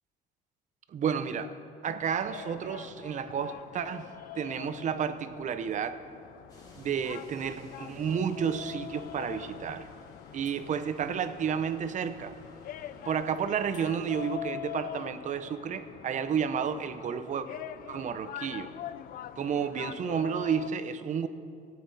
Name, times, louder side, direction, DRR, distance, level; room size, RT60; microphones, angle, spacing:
voice 1, 0.9-1.5 1.8-6.0 6.8-9.9 10.3-12.3 13.1-17.5 17.9-18.7 19.4-21.3, right 7 dB, 45° right, 11 dB, 0.7 m, -31 dB
sound 1, 2.0-20.7, left 12 dB, 60° left, 0.4 m, -44 dB
sound 2, 6.5-14.4, left 1 dB, 20° left, 3.0 m, -56 dB
18.0 x 8.5 x 4.1 m, 2.4 s
cardioid pair, 110°, 17 cm